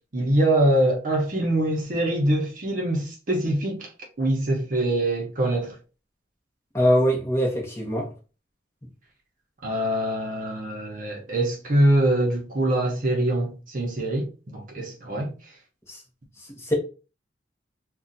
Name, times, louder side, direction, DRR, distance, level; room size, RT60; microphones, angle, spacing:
voice 1, 0.1-3.9 4.2-5.7 9.6-15.3, right 1 dB, 45° right, 0.7 m, -24 dB
voice 2, 6.7-8.1 15.9-16.0 16.6-16.7, equal, 15° left, 0.8 m, -22 dB
2.4 x 2.3 x 3.9 m
head